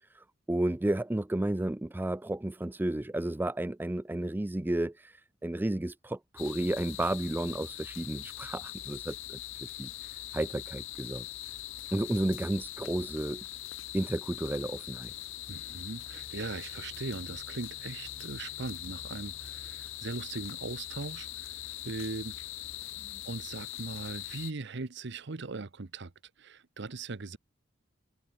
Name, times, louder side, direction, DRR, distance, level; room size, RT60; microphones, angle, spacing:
voice 1, 0.1-11.3 11.9-13.4 13.9-15.1, right 1 dB, 10° right, 0.4 m, -32 dB
sound 1, 6.4-24.5, left 13 dB, 80° left, 1.6 m, -42 dB
voice 2, 15.5-22.4 23.2-26.1 26.4-27.4, right 3 dB, 60° right, 0.9 m, -39 dB
head